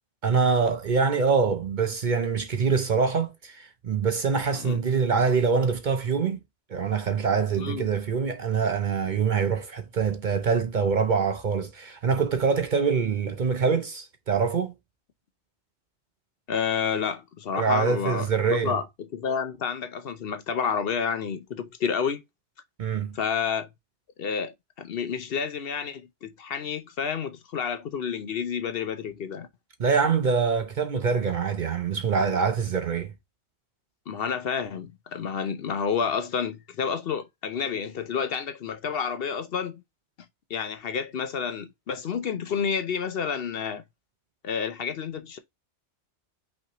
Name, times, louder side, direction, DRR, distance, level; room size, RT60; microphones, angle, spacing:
voice 1, 0.2-6.4 6.7-14.7 17.6-18.8 22.8-23.2 29.8-33.1, right 5 dB, 50° right, 0.7 m, -24 dB
voice 2, 7.6-7.9 16.5-18.9 19.1-22.2 23.1-23.7 24.2-29.5 34.1-39.8 40.5-43.8 44.4-45.4, left 6 dB, 60° left, 0.8 m, -30 dB
5.6 x 3.2 x 2.9 m
omnidirectional pair, 1.2 m